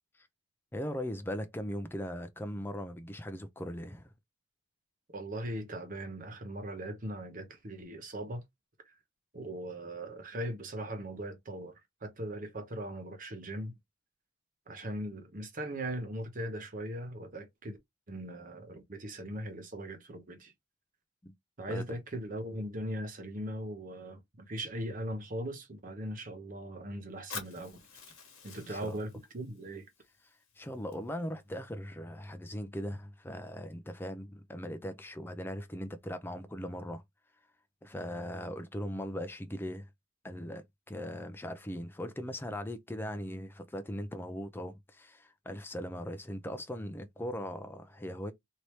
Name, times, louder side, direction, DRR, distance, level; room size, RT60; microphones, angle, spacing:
voice 1, 0.7-4.1 21.2-21.3 21.7-21.9 28.7-29.0 30.2-37.0 37.8-39.9 40.2-48.3, equal, 10° left, 0.4 m, -39 dB
voice 2, 5.1-8.4 8.8-8.9 9.3-11.7 12.0-13.7 14.7-17.8 18.1-20.5 21.6-27.8 28.4-29.9, right 1 dB, 40° right, 0.8 m, -39 dB
Fire, 27.3-31.3, left 5 dB, 70° left, 1.3 m, -48 dB
3.1 x 2.7 x 3.1 m
head